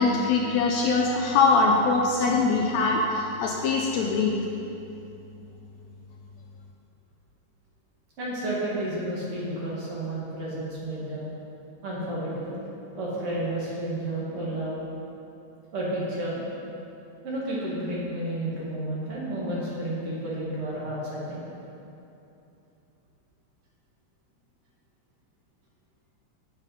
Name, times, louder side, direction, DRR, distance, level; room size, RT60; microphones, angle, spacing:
voice 1, 0.0-4.3, left 4 dB, 80° left, 0 dB, 1.6 m, -22 dB
voice 2, 8.2-11.3 11.8-12.6 13.0-14.8 15.7-16.4 17.2-21.4, right 1 dB, 50° right, -6 dB, 2.4 m, -31 dB
8.1 x 7.3 x 5.3 m, 2.8 s
omnidirectional pair, 3.5 m